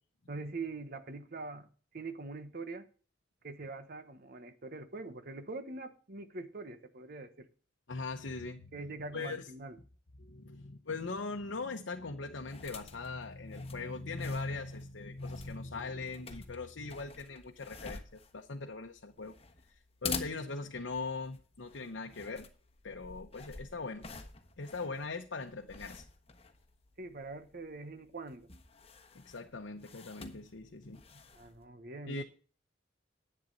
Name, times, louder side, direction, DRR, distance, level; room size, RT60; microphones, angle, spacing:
voice 1, 0.3-1.7 1.9-2.9 3.4-7.5 8.7-9.8 27.0-28.5 31.1-32.2, right 3 dB, 55° right, 1.2 m, -43 dB
voice 2, 7.9-8.7 9.1-9.4 10.2-19.3 19.7-22.5 22.8-24.1 24.6-26.1 29.1-31.0 32.1-32.2, left 3 dB, 80° left, 0.9 m, -40 dB
sound 1, 12.3-31.7, left 4 dB, 35° left, 1.2 m, -48 dB
10.5 x 8.7 x 4.1 m
head